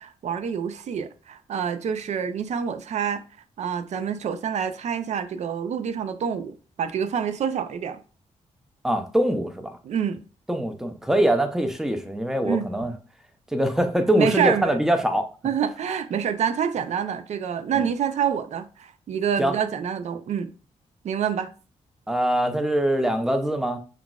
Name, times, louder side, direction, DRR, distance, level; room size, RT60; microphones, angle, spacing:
voice 1, 0.0-3.2 3.6-8.0 9.8-10.2 12.4-12.7 14.2-14.8 15.4-20.5 21.0-21.5, right 7 dB, 65° right, 0.4 m, -27 dB
voice 2, 8.8-9.8 10.5-12.9 13.5-15.3 17.7-17.8 19.4-19.6 22.1-23.8, right 1 dB, 5° right, 0.5 m, -23 dB
5.8 x 2.4 x 2.3 m
cardioid pair, 110°, 13 cm